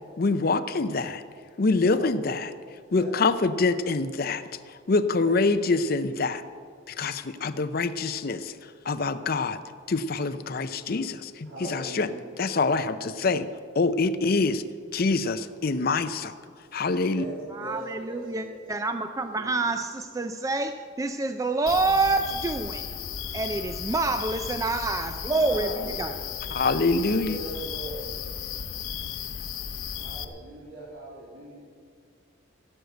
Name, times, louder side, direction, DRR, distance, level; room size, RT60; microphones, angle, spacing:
voice 1, 0.2-1.2 1.6-2.5 2.9-4.4 4.9-6.4 6.9-8.5 8.9-9.6 9.9-12.1 12.4-13.5 13.8-14.6 14.9-16.3 16.7-17.2 26.5-27.4, left 3 dB, 45° left, 12 dB, 0.5 m, -25 dB
voice 2, 11.4-12.2 17.0-18.6 19.1-19.7 25.2-26.0 27.2-28.0 29.9-31.6, right 1 dB, 75° right, -7 dB, 3.2 m, -39 dB
voice 3, 17.5-22.9 23.3-25.7 26.0-26.1, right 3 dB, 15° right, 8 dB, 0.3 m, -27 dB
sound 1, 21.7-30.2, left 8 dB, 90° left, 0.8 m, -35 dB
16.5 x 6.6 x 7.9 m, 2.1 s
head